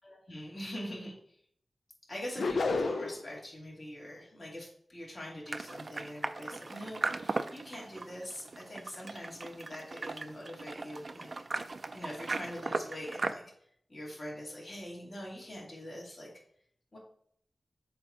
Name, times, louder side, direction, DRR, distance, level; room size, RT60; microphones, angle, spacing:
voice 1, 0.0-1.1 2.1-11.3 11.9-13.4 13.9-16.3 16.9-17.0, equal, 45° left, -4 dB, 2.4 m, -43 dB
sound 1, 2.4-3.3, left 3 dB, 90° left, 0.6 m, -30 dB
sound 2, 5.5-13.3, right 3 dB, 55° right, 0.4 m, -38 dB
7.5 x 2.9 x 4.9 m, 0.66 s
wide cardioid pair, 85°, 0 cm